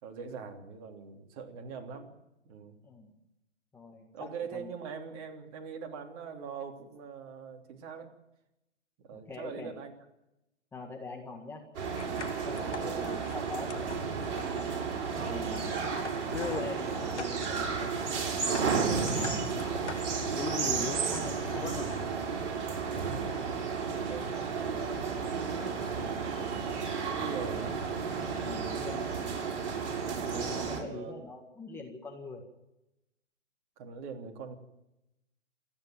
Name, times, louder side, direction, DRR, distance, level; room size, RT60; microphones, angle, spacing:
voice 1, 0.0-2.1 2.4-2.8 4.1-8.1 9.0-9.9 23.6-25.4 27.0-27.8 30.8-31.2 33.8-34.6, right 6 dB, 30° right, 3 dB, 3.1 m, -42 dB
voice 2, 3.7-4.7 9.1-9.7 10.7-11.7 12.1-14.0 15.2-15.9 16.5-18.1 19.1-19.5 20.3-22.0 25.9-26.2 28.4-29.1 30.3-32.4, left 3 dB, 5° left, 0 dB, 1.8 m, -42 dB
sound 1, 11.7-30.8, right 5 dB, 50° right, 7.5 m, -32 dB
sound 2, 12.0-22.0, left 6 dB, 70° left, 2.1 m, -43 dB
28.5 x 10.5 x 9.2 m, 0.90 s
figure-of-eight pair, 135°, 35 cm